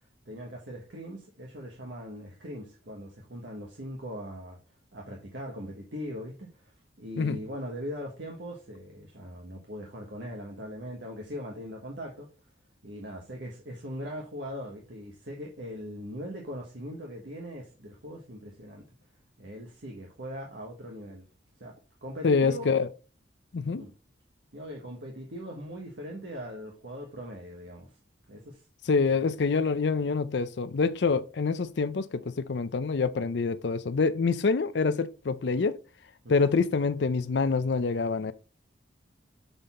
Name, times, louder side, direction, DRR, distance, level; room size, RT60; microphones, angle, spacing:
voice 1, 0.3-4.6 4.9-6.7 7.0-12.3 12.8-18.8 19.4-21.2 21.6-21.7 22.0-22.7 23.8-23.9 24.5-27.9 28.3-28.6 29.1-29.3 36.2-36.3, equal, 70° right, 1.3 m, -40 dB
voice 2, 22.2-22.9 23.5-23.8 28.9-35.8 36.3-38.3, left 4 dB, 65° left, 0.5 m, -26 dB
6.8 x 4.0 x 4.2 m
head